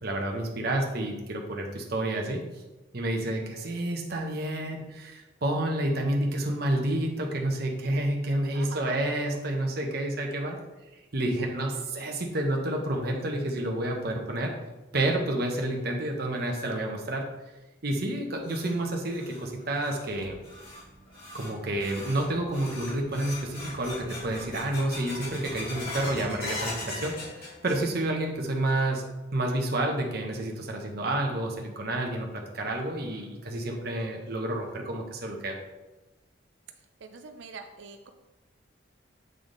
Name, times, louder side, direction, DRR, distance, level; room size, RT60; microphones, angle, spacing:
voice 1, 0.0-2.4 2.9-10.6 11.1-14.5 14.9-17.2 17.8-20.4 21.3-29.0 29.3-35.6, right 1 dB, 55° right, 1 dB, 0.9 m, -29 dB
voice 2, 8.5-9.0 13.1-13.2 37.0-38.1, right 4 dB, 70° right, 6 dB, 0.5 m, -44 dB
sound 1, 18.0-28.2 28.5-29.1 29.5-29.6 30.3-30.4 32.0-32.1 32.6-32.7 33.1-33.2 33.7-33.8 34.3-34.7, left 2 dB, 50° left, 2.2 m, -41 dB
sound 2, 20.1-26.2, right 1 dB, 90° right, 1.0 m, -49 dB
7.7 x 3.5 x 3.8 m, 1.1 s
head